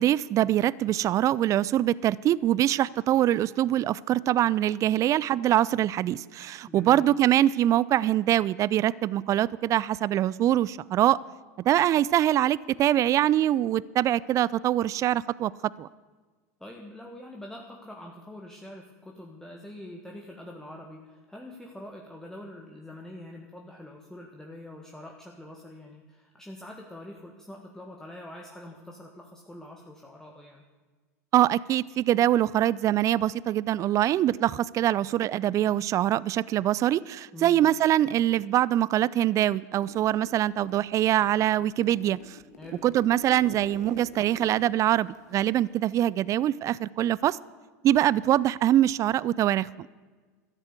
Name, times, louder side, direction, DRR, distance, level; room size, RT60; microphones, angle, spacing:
voice 1, 0.0-11.2 11.6-15.5 15.8-15.9 31.3-42.4 42.8-47.4 47.8-49.7, right 12 dB, 35° right, 21 dB, 0.4 m, -24 dB
voice 2, 6.7-7.0 16.6-30.6 37.3-37.6 42.6-42.8, left 1 dB, 5° left, 1 dB, 1.7 m, -44 dB
Zipper (clothing), 39.8-40.8 41.1-45.8, left 5 dB, 80° left, 1.9 m, -48 dB
13.0 x 10.5 x 8.2 m, 1.4 s
hypercardioid pair, 95°, 9 cm